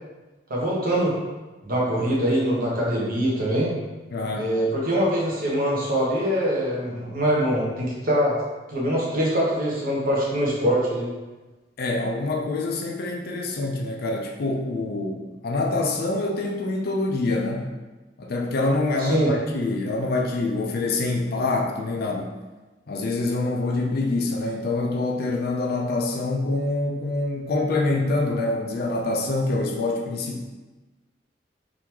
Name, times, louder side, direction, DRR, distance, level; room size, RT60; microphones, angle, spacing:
voice 1, 0.5-1.1 1.6-3.7 4.3-8.4 8.7-11.1 19.0-19.3, equal, 50° right, -5 dB, 1.1 m, -23 dB
voice 2, 4.1-4.5 11.8-17.7 18.2-22.3 22.9-30.4, left 2 dB, 55° left, 1 dB, 0.5 m, -25 dB
3.8 x 3.4 x 3.0 m, 1.2 s
head